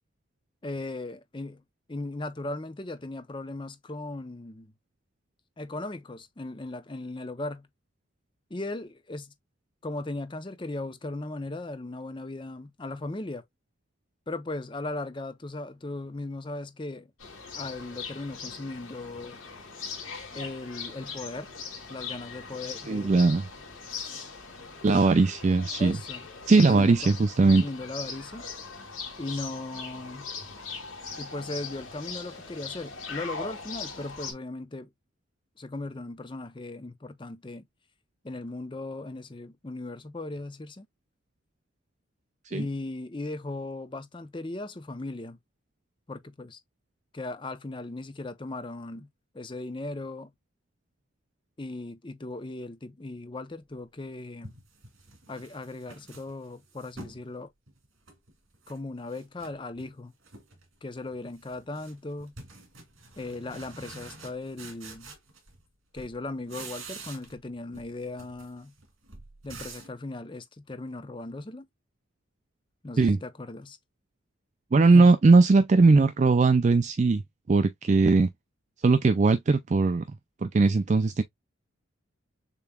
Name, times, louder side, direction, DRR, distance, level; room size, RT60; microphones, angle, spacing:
voice 1, 0.6-1.6 1.9-4.7 5.6-7.7 8.5-9.3 9.8-13.4 14.3-17.1 17.5-19.4 20.3-21.5 21.9-23.1 24.8-25.0 25.8-26.2 26.6-27.1 27.5-28.5 29.2-30.3 31.2-34.9 35.6-37.6 38.2-40.9 42.5-45.4 46.1-46.6 47.1-49.1 49.3-50.3 51.6-54.5 55.3-57.5 58.7-60.1 60.8-62.3 63.2-65.1 65.9-68.7 69.4-71.7 72.8-73.8 74.9-75.1, left 2 dB, 25° left, 0.6 m, -37 dB
sound 1, 17.2-34.3, left 5 dB, 85° left, 2.3 m, -40 dB
voice 2, 22.9-23.5 24.8-26.0 26.5-27.6 42.5-42.6 73.0-73.2 74.7-77.2 77.5-78.3 78.8-80.0 80.4-81.2, right 3 dB, 35° right, 0.3 m, -20 dB
sound 2, 53.8-53.9 54.4-57.2 57.7-58.8 59.1-59.9 60.2-60.7 61.0-65.7 66.0-67.5 67.7-70.0, right 3 dB, 75° right, 2.2 m, -47 dB
6.9 x 3.0 x 2.2 m
head